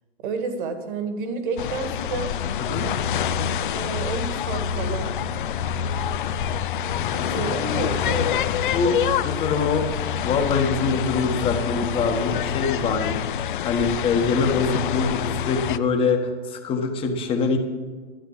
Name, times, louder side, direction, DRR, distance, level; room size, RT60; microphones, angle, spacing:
voice 1, 0.2-2.3 3.7-5.1 7.1-8.5, right 4 dB, 45° right, 7 dB, 1.9 m, -30 dB
sound 1, 1.6-15.8, left 8 dB, 45° left, 0.5 m, -26 dB
voice 2, 9.2-9.9 10.2-13.3 13.6-17.6, left 4 dB, 15° left, 4 dB, 1.2 m, -24 dB
12.5 x 7.9 x 7.6 m, 1.4 s
hypercardioid pair, 150°, 36 cm